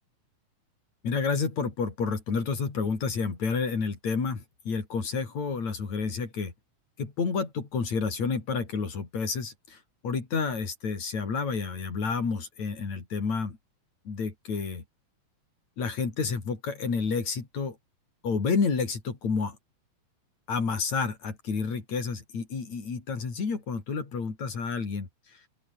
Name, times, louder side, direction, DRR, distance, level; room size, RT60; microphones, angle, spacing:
voice 1, 1.0-6.5 7.0-9.8 10.0-13.6 14.1-14.8 15.8-17.8 18.2-19.6 20.5-25.1, left 5 dB, 65° left, 5.6 m, -30 dB
open air
omnidirectional pair, 3.4 m